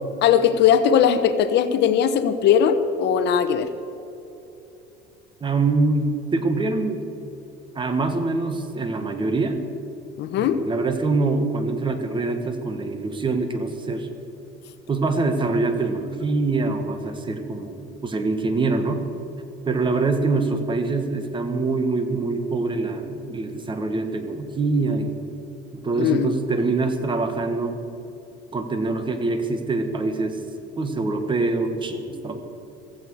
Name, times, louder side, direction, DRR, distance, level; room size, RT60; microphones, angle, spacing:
voice 1, 0.2-3.7 10.2-10.6 26.0-26.3, left 8 dB, 55° left, 11 dB, 1.0 m, -19 dB
voice 2, 5.4-7.0 7.8-9.6 10.4-14.1 14.9-19.0 19.7-25.2 25.7-27.8 28.5-30.4 30.8-32.4, right 3 dB, 25° right, 7 dB, 1.6 m, -24 dB
15.5 x 15.0 x 4.8 m, 3.0 s
cardioid pair, 120°, 21 cm